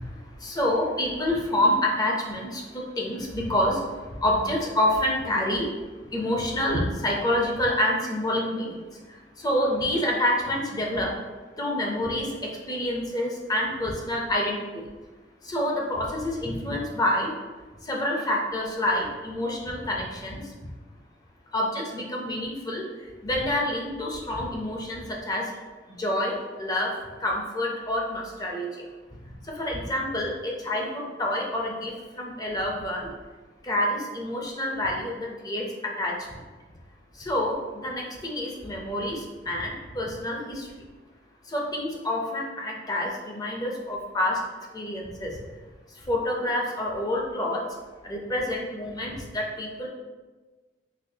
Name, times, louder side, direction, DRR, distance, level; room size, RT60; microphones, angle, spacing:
voice 1, 0.4-3.8 4.2-5.7 6.1-8.8 9.4-11.1 11.6-14.6 15.5-17.3 17.9-20.4 21.5-22.8 23.2-25.5 26.0-26.9 27.2-28.7 29.5-33.1 33.6-36.1 37.2-40.7 41.5-44.4 44.7-45.3 46.1-47.6 48.0-49.9, left 1 dB, 20° left, -1 dB, 0.6 m, -27 dB
4.1 x 2.7 x 2.7 m, 1.3 s
head